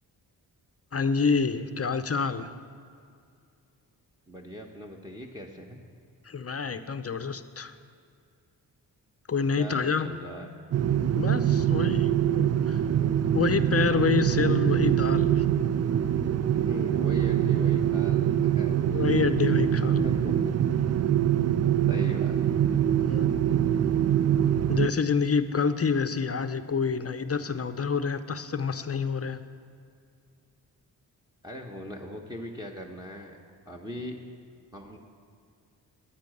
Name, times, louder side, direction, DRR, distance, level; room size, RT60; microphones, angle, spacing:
voice 1, 0.9-2.5 6.3-7.7 9.3-10.1 11.1-12.8 13.3-15.5 18.9-20.0 23.0-23.3 24.7-29.4, left 5 dB, 35° left, 11 dB, 0.7 m, -27 dB
voice 2, 4.3-5.8 9.5-10.5 16.6-19.1 20.0-20.3 21.9-22.4 31.4-33.4 33.6-34.2 34.7-35.0, equal, 10° right, 0 dB, 1.3 m, -40 dB
sound 1, 10.7-24.9, right 10 dB, 35° right, 0.4 m, -24 dB
9.9 x 8.3 x 7.9 m, 2.3 s
supercardioid pair, 40°, 45 cm